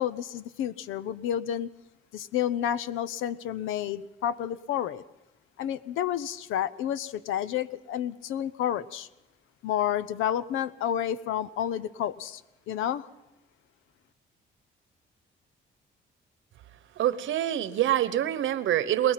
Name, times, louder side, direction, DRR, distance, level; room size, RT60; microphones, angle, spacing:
voice 1, 0.0-1.7 2.1-5.0 5.6-9.1 9.6-12.4 12.7-13.1, left 10 dB, 90° left, 16 dB, 0.7 m, -30 dB
voice 2, 17.0-19.1, right 12 dB, 75° right, 14 dB, 1.1 m, -25 dB
22.0 x 20.0 x 5.9 m, 0.98 s
cardioid pair, 90°, 20 cm